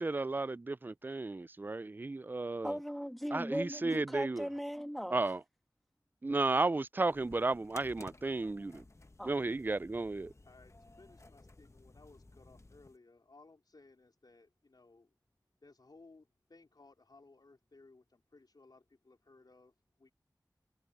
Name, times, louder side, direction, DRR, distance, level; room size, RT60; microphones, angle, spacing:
voice 1, 0.0-2.7 3.3-4.5 5.1-5.4 6.2-8.8 9.2-10.3, right 3 dB, 25° right, 0.3 m, -33 dB
voice 2, 2.6-5.2 9.2-9.3, equal, ahead, 1.9 m, -38 dB
sound 1, 7.1-13.0, left 2 dB, 40° left, 0.9 m, -57 dB
voice 3, 10.4-15.1 15.6-20.1, left 3 dB, 70° left, 4.0 m, -61 dB
wide cardioid pair, 45°, 7 cm